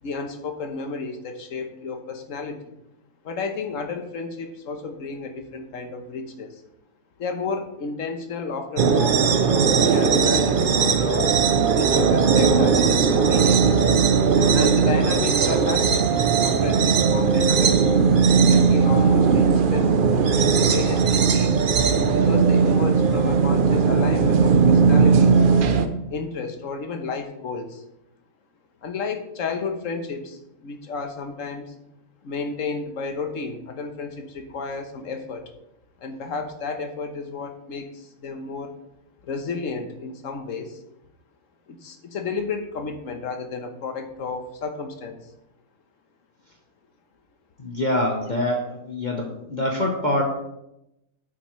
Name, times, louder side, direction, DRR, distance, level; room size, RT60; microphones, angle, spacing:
voice 1, 0.0-2.7 3.2-6.6 7.2-11.3 11.7-13.8 14.5-18.0 18.5-20.0 20.4-21.6 22.1-25.4 26.1-27.8 28.8-31.8 32.2-35.5 36.0-38.7 39.2-40.8 41.7-45.2, left 4 dB, 55° left, 6 dB, 1.3 m, -32 dB
sound 1, 8.8-25.9, right 5 dB, 70° right, 0.5 m, -18 dB
voice 2, 47.6-50.2, left 1 dB, 35° left, 0 dB, 1.0 m, -25 dB
8.9 x 8.3 x 3.1 m, 0.87 s
omnidirectional pair, 1.7 m